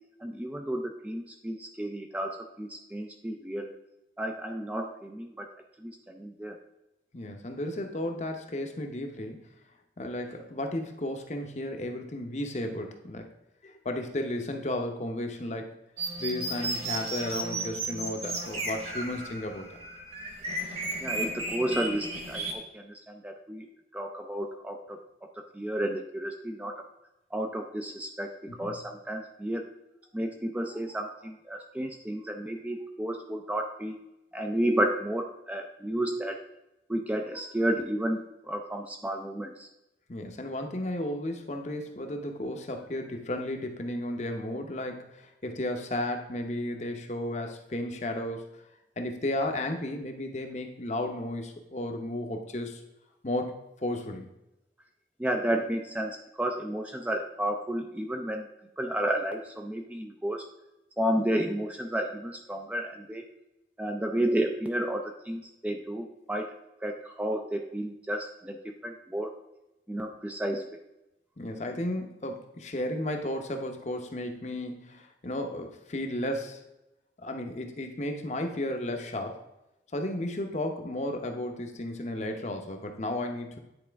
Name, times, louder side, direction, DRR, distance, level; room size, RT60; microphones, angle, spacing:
voice 1, 0.2-3.8 4.2-5.5 5.8-6.6 21.0-23.7 23.9-25.0 25.5-26.8 27.3-29.6 30.1-34.0 34.3-36.4 36.9-39.7 55.2-58.5 58.8-60.5 61.0-63.2 63.8-66.6 66.8-69.3 69.9-70.8, right 1 dB, 10° right, 3 dB, 0.4 m, -32 dB
voice 2, 7.1-9.5 10.0-13.3 13.6-15.7 16.2-19.7 28.6-28.8 40.1-48.5 49.0-52.8 53.2-54.3 71.4-76.6 77.2-79.4 79.9-83.6, left 1 dB, 40° left, 4 dB, 0.7 m, -34 dB
sound 1, 16.0-22.5, right 2 dB, 35° right, 1.2 m, -34 dB
9.7 x 4.2 x 3.4 m, 0.92 s
head